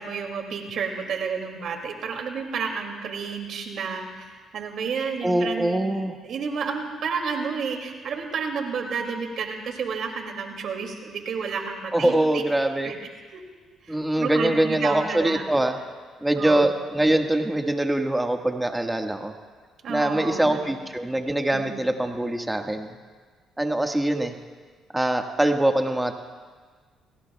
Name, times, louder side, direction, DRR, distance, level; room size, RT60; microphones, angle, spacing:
voice 1, 0.0-5.8 6.2-12.4 12.8-12.9 13.3-13.4 13.8-15.4 16.4-16.7 19.8-20.7 21.5-21.7, right 5 dB, 65° right, 3 dB, 2.6 m, -31 dB
voice 2, 5.2-6.2 11.9-12.9 13.9-15.8 16.2-19.3 19.9-22.9 23.6-24.3 24.9-26.1, right 1 dB, 10° right, 3 dB, 1.7 m, -23 dB
28.0 x 18.0 x 2.4 m, 1.5 s
supercardioid pair, 70°, 0 cm